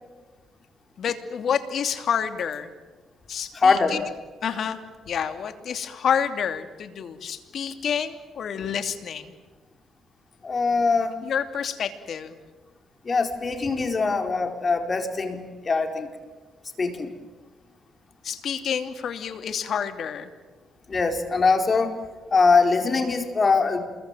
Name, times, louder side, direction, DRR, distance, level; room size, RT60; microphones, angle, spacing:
voice 1, 1.0-2.7 3.3-4.1 4.4-4.8 5.0-9.4 11.2-12.4 18.2-20.3, left 7 dB, 60° left, 8 dB, 2.9 m, -28 dB
voice 2, 3.5-4.0 10.4-11.2 13.0-16.1 16.8-17.1 20.9-22.0 22.3-23.8, left 4 dB, 35° left, 5 dB, 4.6 m, -22 dB
28.0 x 22.5 x 9.2 m, 1.3 s
cardioid pair, 90°, 0 cm